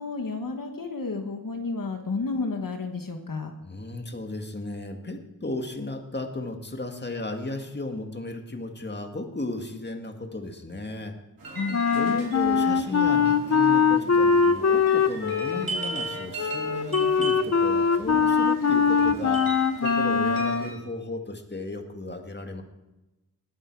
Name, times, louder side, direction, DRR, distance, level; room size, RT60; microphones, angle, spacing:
voice 1, 0.0-3.5 11.5-11.8, left 3 dB, 70° left, 5 dB, 1.4 m, -31 dB
voice 2, 3.6-11.2 11.9-22.6, left 2 dB, 30° left, 4 dB, 1.9 m, -35 dB
sound 1, 11.4-20.7, right 3 dB, 85° right, 4.7 m, -38 dB
Wind instrument woodwind instrument, 11.7-20.7, left 6 dB, 50° left, 0.8 m, -22 dB
20.0 x 8.8 x 4.7 m, 1.0 s
wide cardioid pair, 70°, 35 cm